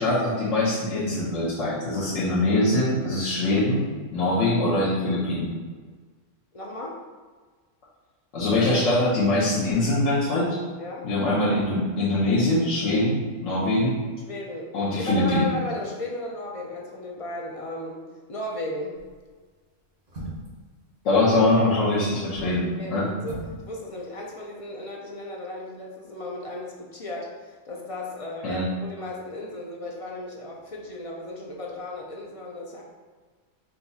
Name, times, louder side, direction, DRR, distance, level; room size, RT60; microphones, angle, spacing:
voice 1, 0.0-3.9 4.1-5.5 8.3-10.6 11.0-13.9 14.7-15.5 21.0-22.7 22.9-23.1 28.4-28.6, left 2 dB, 85° left, -8 dB, 1.2 m, -23 dB
voice 2, 6.5-7.0 10.8-11.0 12.9-13.0 14.2-14.7 15.1-18.0 18.3-19.0 22.8-23.4 23.7-32.8, left 1 dB, 50° left, -2 dB, 0.4 m, -35 dB
sound 1, 18.9-19.3 20.1-20.6 22.1-22.6 23.2-23.6 23.9-24.0, right 1 dB, 85° right, 1.8 m, -38 dB
5.1 x 2.3 x 4.0 m, 1.5 s
omnidirectional pair, 1.3 m